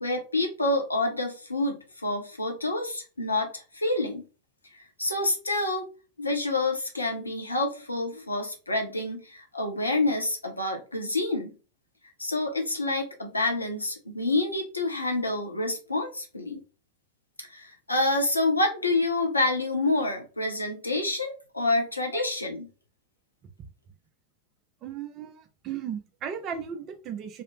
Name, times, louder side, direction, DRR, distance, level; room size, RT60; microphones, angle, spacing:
voice 1, 0.0-4.3 4.7-5.9 6.2-11.6 12.2-16.6 17.5-22.7, left 2 dB, 80° left, 0.6 m, -28 dB
voice 2, 24.8-27.4, right 8 dB, 35° right, 0.4 m, -36 dB
2.3 x 2.0 x 2.9 m
figure-of-eight pair, 90°, 0 cm